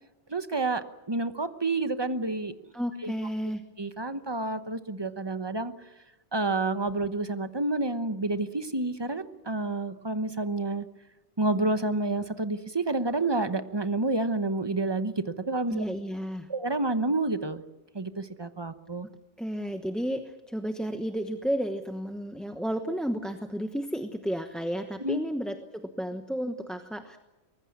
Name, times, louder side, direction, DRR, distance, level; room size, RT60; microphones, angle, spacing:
voice 1, 0.3-2.5 3.0-3.1 3.8-5.7 6.3-10.8 11.4-15.8 16.5-17.6 17.9-19.1 25.0-25.2, right 2 dB, 25° right, 10 dB, 1.0 m, -29 dB
voice 2, 2.7-3.6 15.7-16.5 19.4-27.2, equal, ahead, 7 dB, 1.0 m, -32 dB
24.0 x 20.0 x 8.7 m, 1.1 s
omnidirectional pair, 1.2 m